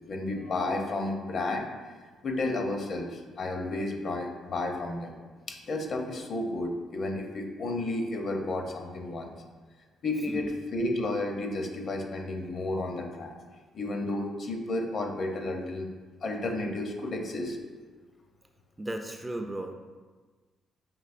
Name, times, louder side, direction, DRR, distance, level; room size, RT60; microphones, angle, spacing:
voice 1, 0.1-1.7 2.2-5.2 5.5-9.3 10.0-13.3 13.7-15.9 16.2-17.6, left 2 dB, 55° left, 3 dB, 0.6 m, -32 dB
voice 2, 18.8-19.7, right 1 dB, 15° right, 4 dB, 0.3 m, -35 dB
5.3 x 3.0 x 2.5 m, 1.4 s
cardioid pair, 90°, 0 cm